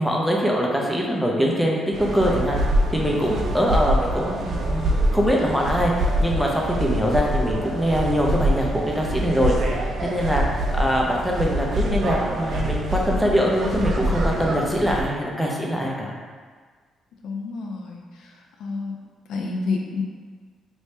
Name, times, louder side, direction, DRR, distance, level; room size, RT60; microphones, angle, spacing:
voice 1, 0.0-1.8 2.1-2.6 2.9-5.9 6.2-8.7 9.0-10.4 10.7-16.1, equal, ahead, -2 dB, 0.6 m, -23 dB
sound 1, 1.9-15.0, right 1 dB, 60° right, 0.5 m, -25 dB
voice 2, 17.2-18.3 18.6-19.0 19.3-20.0, left 4 dB, 75° left, 1 dB, 0.4 m, -29 dB
3.1 x 2.7 x 3.2 m, 1.5 s
cardioid pair, 90°, 0 cm